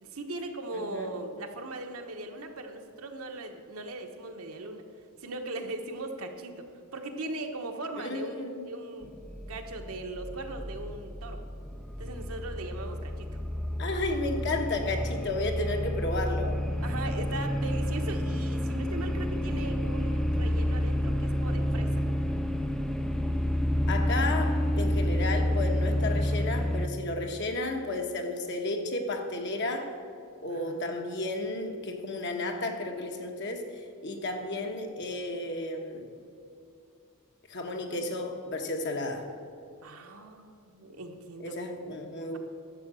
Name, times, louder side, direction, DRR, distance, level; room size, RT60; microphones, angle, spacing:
voice 1, 0.0-4.8 5.2-9.1 9.5-11.4 12.0-13.4 16.8-22.0 30.5-30.8 37.9-38.0 39.8-41.6, right 2 dB, 70° right, 4 dB, 1.2 m, -39 dB
voice 2, 0.7-1.1 8.0-8.7 13.8-16.6 23.9-29.9 30.4-36.1 37.5-39.3 41.4-42.4, left 2 dB, 55° left, 3 dB, 1.3 m, -33 dB
sound 1, 9.0-26.9, left 1 dB, ahead, 0.4 m, -29 dB
11.5 x 7.8 x 6.3 m, 2.5 s
head